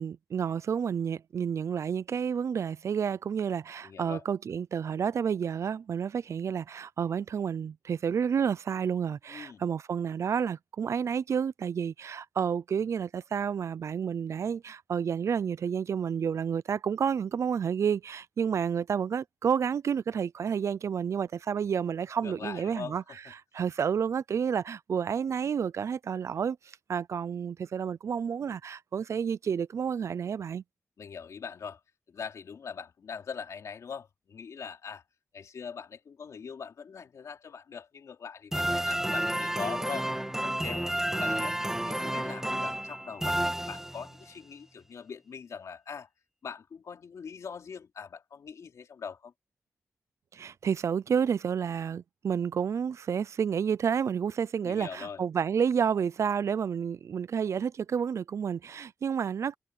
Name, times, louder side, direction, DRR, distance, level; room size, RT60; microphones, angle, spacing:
voice 1, 0.0-23.0 23.5-26.6 26.9-30.6 50.3-59.6, right 7 dB, 65° right, 0.4 m, -30 dB
voice 2, 3.8-4.2 9.3-9.6 22.2-23.2 31.0-31.8 32.1-35.0 35.3-40.1 40.4-40.8 41.2-41.6 41.9-46.1 46.4-49.3 54.6-55.2, left 6 dB, 80° left, 2.9 m, -42 dB
sound 1, 38.5-44.2, right 1 dB, 10° right, 1.4 m, -31 dB
wide cardioid pair, 175°, 5 cm